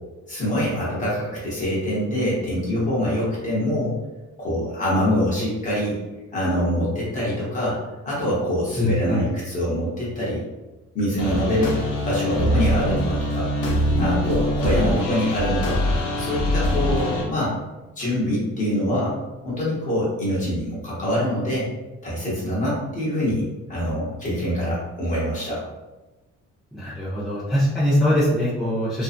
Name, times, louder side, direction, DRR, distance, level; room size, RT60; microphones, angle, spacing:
voice 1, 0.3-3.9 4.4-6.0 6.3-7.8 8.0-10.4 10.9-11.7 12.0-13.5 14.0-15.8 16.2-17.5 18.0-19.2 19.4-21.7 22.0-25.6, equal, 25° left, -7 dB, 1.0 m, -24 dB
voice 2, 8.8-9.2 26.7-29.0, left 1 dB, ahead, -12 dB, 0.5 m, -22 dB
sound 1, 11.2-17.2, left 1 dB, 75° left, 0.8 m, -23 dB
2.6 x 2.3 x 2.4 m, 1.1 s
cardioid pair, 175°, 30 cm